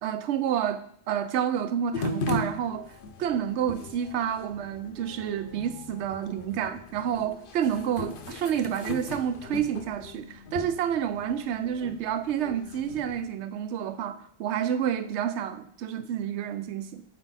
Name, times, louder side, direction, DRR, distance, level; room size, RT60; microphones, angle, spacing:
voice 1, 0.0-17.0, right 9 dB, 80° right, 0.9 m, -29 dB
sound 1, 1.9-13.3, left 2 dB, 55° left, 0.8 m, -38 dB
7.9 x 4.5 x 4.1 m
omnidirectional pair, 1.2 m